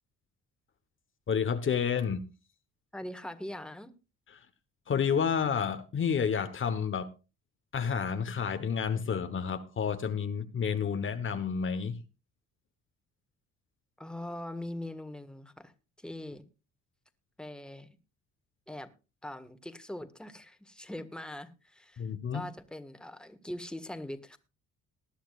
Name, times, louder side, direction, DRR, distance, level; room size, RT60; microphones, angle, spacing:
voice 1, 1.3-2.3 4.9-7.1 7.7-12.0 22.0-22.5, left 7 dB, 45° left, 1.2 m, -30 dB
voice 2, 2.9-3.9 14.0-15.7 16.0-16.4 17.4-17.9 18.7-18.9 19.2-22.0 22.3-24.4, left 1 dB, 5° left, 1.6 m, -41 dB
19.5 x 11.5 x 2.5 m
cardioid pair, 90°, 29 cm